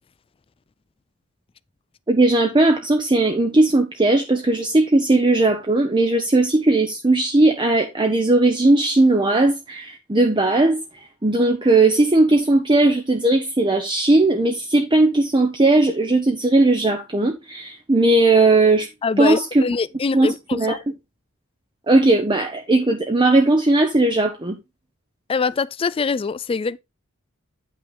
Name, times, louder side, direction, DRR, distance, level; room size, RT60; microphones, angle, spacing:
voice 1, 2.1-18.9 19.2-19.6 20.1-20.8 21.9-24.6, right 2 dB, 20° right, 0.8 m, -18 dB
voice 2, 19.0-20.8 25.3-26.8, left 4 dB, 25° left, 0.3 m, -23 dB
8.7 x 5.8 x 3.7 m
head